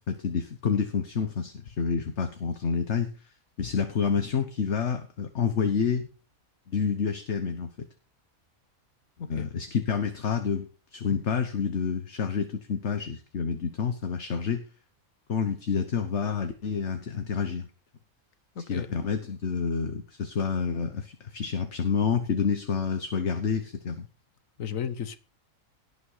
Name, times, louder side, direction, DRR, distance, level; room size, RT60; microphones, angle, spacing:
voice 1, 0.1-3.1 3.6-6.1 6.7-7.9 9.3-14.6 15.3-17.7 18.7-24.1, left 6 dB, 55° left, 1.4 m, -28 dB
voice 2, 18.5-19.0 24.6-25.2, left 8 dB, 70° left, 1.5 m, -34 dB
17.5 x 5.9 x 5.7 m
omnidirectional pair, 1.4 m